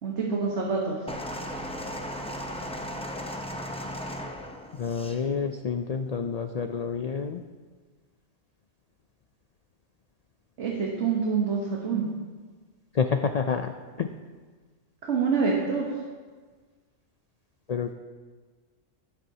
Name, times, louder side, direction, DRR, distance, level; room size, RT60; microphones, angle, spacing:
voice 1, 0.0-1.0 10.6-12.1 15.1-15.9, right 5 dB, 65° right, -2 dB, 1.5 m, -26 dB
sound 1, 1.1-5.2 6.1-6.2, equal, 5° left, 0.5 m, -36 dB
voice 2, 4.7-7.4 12.9-14.1 17.7-17.9, left 6 dB, 85° left, 7 dB, 0.3 m, -29 dB
13.0 x 10.5 x 2.8 m, 1.4 s
omnidirectional pair, 1.3 m